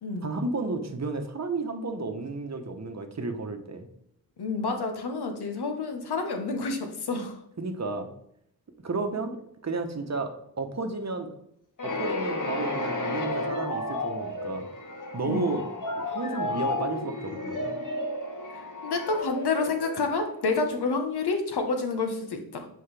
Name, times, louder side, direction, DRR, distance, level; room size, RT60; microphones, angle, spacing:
voice 1, 0.2-3.9 7.6-8.1 8.8-10.3 10.6-11.3 11.8-14.7 15.1-17.8, right 3 dB, 45° right, 7 dB, 1.0 m, -32 dB
voice 2, 4.4-7.4 15.2-15.5 18.5-22.7, left 3 dB, 85° left, 5 dB, 1.1 m, -29 dB
sound 1, 11.8-20.5, left 2 dB, 55° left, 1.4 m, -32 dB
7.9 x 4.6 x 3.4 m, 0.74 s
wide cardioid pair, 80°, 38 cm